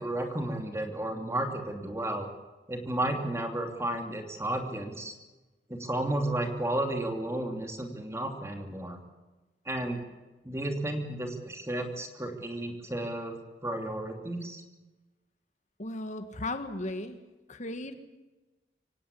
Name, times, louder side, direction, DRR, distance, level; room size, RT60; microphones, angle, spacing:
voice 1, 0.0-2.3 2.7-5.2 5.7-9.0 9.6-10.0 10.4-14.6, right 1 dB, 15° right, 4 dB, 3.0 m, -33 dB
voice 2, 15.8-17.2 17.5-17.9, left 2 dB, 45° left, 9 dB, 1.6 m, -36 dB
25.5 x 17.0 x 8.5 m, 1.2 s
head